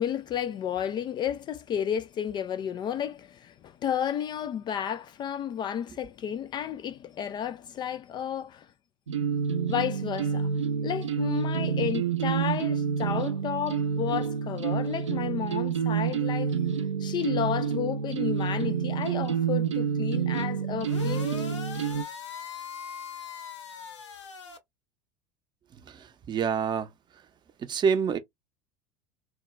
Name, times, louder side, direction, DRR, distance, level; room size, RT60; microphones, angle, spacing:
voice 1, 0.0-8.7 9.7-10.5 10.8-16.6 17.0-21.6, left 9 dB, 30° left, 0.3 m, -32 dB
sound 1, 9.1-22.0, right 7 dB, 80° right, 0.4 m, -28 dB
sound 2, 20.8-24.6, left 6 dB, 75° left, 0.7 m, -40 dB
voice 2, 25.9-26.9 27.6-28.2, right 6 dB, 30° right, 0.6 m, -27 dB
2.3 x 2.1 x 3.0 m
figure-of-eight pair, 70°, 15 cm